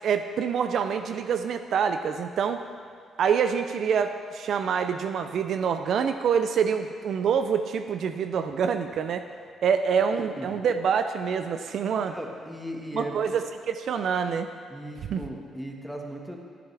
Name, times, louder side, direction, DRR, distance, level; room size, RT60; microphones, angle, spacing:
voice 1, 0.0-2.6 3.2-9.3 9.6-12.2 12.9-14.5 15.1-15.2, right 7 dB, 65° right, 8 dB, 0.4 m, -26 dB
voice 2, 12.0-13.2 14.7-16.4, equal, 5° right, 1 dB, 1.5 m, -37 dB
15.5 x 9.4 x 3.4 m, 2.1 s
cardioid pair, 90°, 0 cm